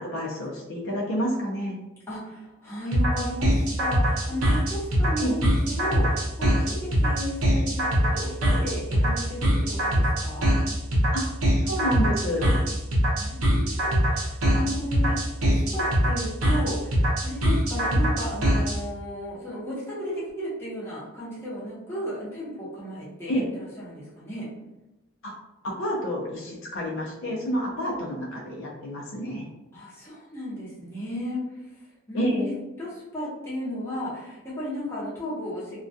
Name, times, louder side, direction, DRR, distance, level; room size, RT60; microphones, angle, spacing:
voice 1, 0.0-1.8 5.2-5.3 11.1-11.2 11.6-12.5 23.3-23.4 25.2-25.3 25.6-29.5 32.1-32.5, equal, 60° left, -3 dB, 0.5 m, -29 dB
voice 2, 2.1-10.5 13.2-24.5 29.7-32.5 32.8-35.8, equal, 10° left, -8 dB, 0.8 m, -34 dB
sound 1, 2.9-18.8, equal, 85° right, 0.7 m, -22 dB
2.2 x 2.2 x 2.6 m, 1.0 s
head